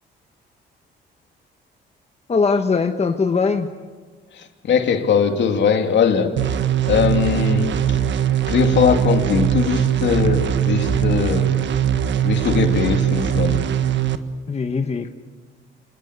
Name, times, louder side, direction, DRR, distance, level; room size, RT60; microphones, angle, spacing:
voice 1, 2.3-3.7 14.5-15.1, left 4 dB, 30° left, 6 dB, 1.3 m, -20 dB
voice 2, 4.3-6.5 6.9-8.0 8.5-11.6 12.2-13.7, left 6 dB, 65° left, 5 dB, 2.8 m, -20 dB
sound 1, 6.4-14.1, right 10 dB, 65° right, 1.5 m, -20 dB
26.0 x 20.5 x 8.2 m, 1.5 s
cardioid pair, 90°, 20 cm